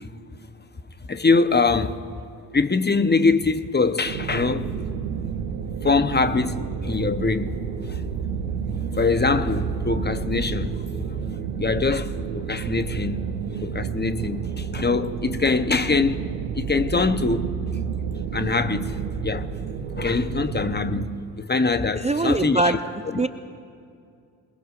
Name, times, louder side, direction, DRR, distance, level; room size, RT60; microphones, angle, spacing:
voice 1, 1.1-2.0 2.5-4.7 5.8-7.6 7.9-8.0 8.9-10.7 11.1-11.2 11.6-13.2 13.6-16.3 16.5-17.5 18.3-19.0 19.2-19.5 19.9-22.8 23.1-23.2, left 4 dB, 20° left, 0.9 m, -23 dB
sound 1, 4.0-21.1, right 7 dB, 80° right, 1.1 m, -30 dB
voice 2, 22.0-22.8 23.2-23.3, right 2 dB, 15° right, 0.6 m, -22 dB
27.0 x 20.0 x 2.5 m
hypercardioid pair, 45°, 49 cm